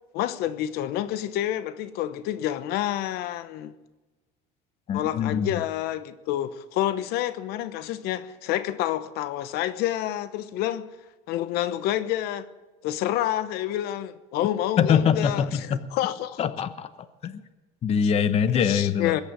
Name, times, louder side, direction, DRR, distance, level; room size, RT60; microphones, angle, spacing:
voice 1, 0.1-3.7 4.9-10.9 11.3-12.5 12.8-16.5 18.5-19.2, left 12 dB, 70° left, 0.9 m, -28 dB
voice 2, 4.9-5.6 14.8-15.8 16.4-17.4 17.8-19.2, left 7 dB, 35° left, 0.9 m, -24 dB
21.0 x 8.7 x 7.6 m
cardioid pair, 130°, 17 cm